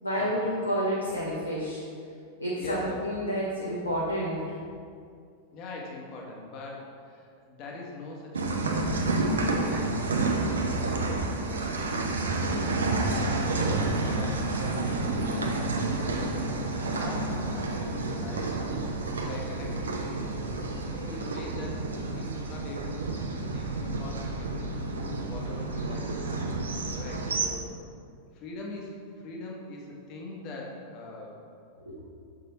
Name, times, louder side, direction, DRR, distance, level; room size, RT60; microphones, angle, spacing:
voice 1, 0.0-1.8 2.4-4.4 31.9-32.0, equal, 85° left, -6 dB, 0.8 m, -29 dB
voice 2, 2.5-3.0 5.5-18.5 18.8-26.5 26.9-27.7 28.3-31.5, left 2 dB, 40° left, -1 dB, 1.2 m, -43 dB
sound 1, 8.3-27.5, right 2 dB, 70° right, 0.6 m, -30 dB
6.5 x 3.9 x 4.1 m, 2.3 s
figure-of-eight pair, 90°, 0 cm